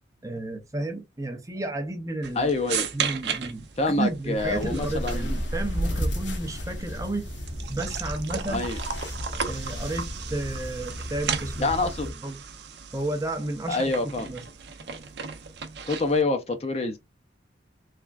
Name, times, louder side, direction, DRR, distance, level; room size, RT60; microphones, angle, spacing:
voice 1, 0.2-2.5 2.9-7.3 7.7-8.7 9.5-11.7 12.2-12.4 12.9-14.4, right 2 dB, 15° right, 0.5 m, -32 dB
sound 1, 2.2-16.2, right 7 dB, 60° right, 0.6 m, -36 dB
voice 2, 2.4-2.9 3.8-5.3 8.5-8.8 11.6-12.1 13.7-14.3 15.9-17.0, left 3 dB, 35° left, 0.5 m, -26 dB
sound 2, 4.4-12.1, equal, 80° left, 1.1 m, -33 dB
3.5 x 3.3 x 2.4 m
head